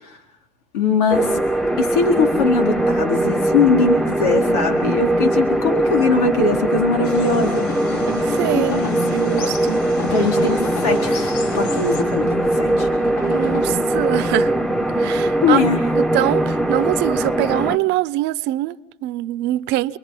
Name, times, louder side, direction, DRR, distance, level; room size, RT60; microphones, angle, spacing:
voice 1, 0.7-1.4 1.8-7.7 8.5-9.0 10.1-12.9 15.4-15.9, left 4 dB, 90° left, 4.1 m, -21 dB
sound 1, 1.1-17.8, right 1 dB, ahead, 1.4 m, -21 dB
sound 2, 7.0-12.0, left 4 dB, 70° left, 5.5 m, -38 dB
sound 3, 7.2-13.7, left 4 dB, 55° left, 4.1 m, -33 dB
voice 2, 8.1-9.8 10.2-10.3 13.2-14.5 15.0-15.6 16.0-20.0, right 15 dB, 65° right, 0.9 m, -23 dB
29.0 x 21.5 x 5.7 m
supercardioid pair, 90°, 19 cm